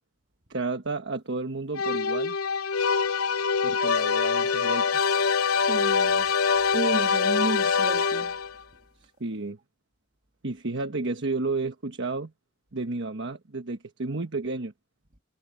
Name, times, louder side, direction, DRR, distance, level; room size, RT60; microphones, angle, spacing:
voice 1, 0.5-2.4 3.6-5.0 9.0-9.6 10.4-12.3 12.7-14.7, right 3 dB, 60° right, 1.3 m, -32 dB
sound 1, 1.7-8.6, left 5 dB, 90° left, 0.9 m, -24 dB
voice 2, 5.5-8.4, right 2 dB, 40° right, 2.9 m, -33 dB
head